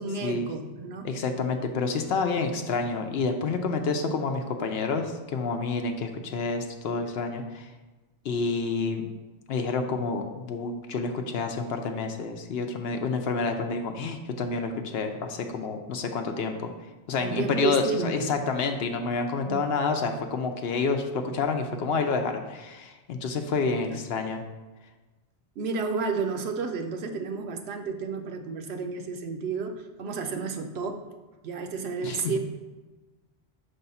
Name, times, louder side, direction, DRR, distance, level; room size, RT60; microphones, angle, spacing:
voice 1, 0.0-1.1 15.5-15.6 17.2-18.3 19.4-19.7 23.9-24.0 25.6-31.0 31.4-32.4, right 4 dB, 65° right, 5 dB, 0.8 m, -31 dB
voice 2, 1.0-7.7 8.2-9.0 9.5-16.7 17.1-24.4 32.0-32.4, left 4 dB, 65° left, 5 dB, 0.8 m, -29 dB
5.7 x 3.5 x 5.4 m, 1.2 s
omnidirectional pair, 1.2 m